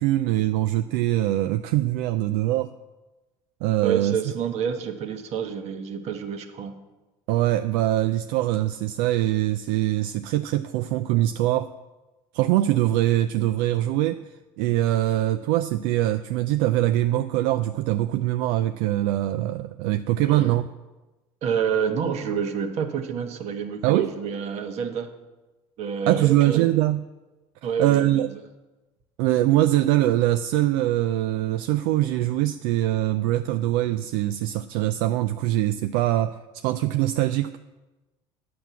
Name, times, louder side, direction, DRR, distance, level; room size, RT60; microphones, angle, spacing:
voice 1, 0.0-2.7 3.6-4.2 7.3-11.7 12.3-14.2 14.6-20.7 23.8-24.1 26.1-27.0 27.8-28.3 29.2-37.6, right 14 dB, 80° right, 9 dB, 0.4 m, -23 dB
voice 2, 3.8-6.7 20.2-20.6 21.4-25.1 25.8-26.7 27.6-28.2, right 7 dB, 60° right, 6 dB, 1.3 m, -28 dB
9.4 x 6.0 x 8.2 m, 1.1 s
supercardioid pair, 100°, 13 cm